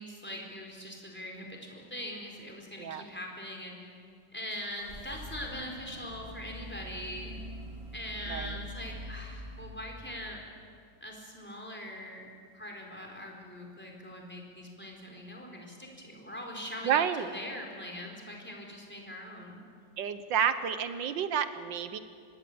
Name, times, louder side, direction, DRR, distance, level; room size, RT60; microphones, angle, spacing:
voice 1, 0.0-4.0 4.3-7.4 7.9-10.4 11.0-12.3 12.5-17.0 17.3-19.6, left 1 dB, 5° left, 0 dB, 4.4 m, -42 dB
sound 1, 4.5-10.4, equal, 15° right, 2.4 m, -44 dB
voice 2, 16.8-17.3 20.0-22.0, right 8 dB, 80° right, 11 dB, 1.7 m, -30 dB
25.5 x 19.5 x 8.7 m, 2.2 s
omnidirectional pair, 1.9 m